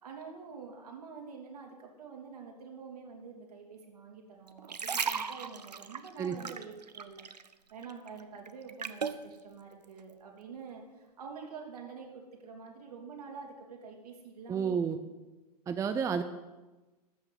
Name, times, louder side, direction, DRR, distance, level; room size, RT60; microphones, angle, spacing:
voice 1, 0.0-14.8, right 5 dB, 70° right, 0 dB, 3.2 m, -47 dB
sound 1, 4.5-7.5 7.8-9.2 9.8-10.0, right 6 dB, 85° right, 0.8 m, -36 dB
voice 2, 14.5-15.0 15.7-16.2, right 6 dB, 15° right, 9 dB, 0.6 m, -30 dB
13.5 x 5.9 x 8.3 m, 1.1 s
hypercardioid pair, 105°, 20 cm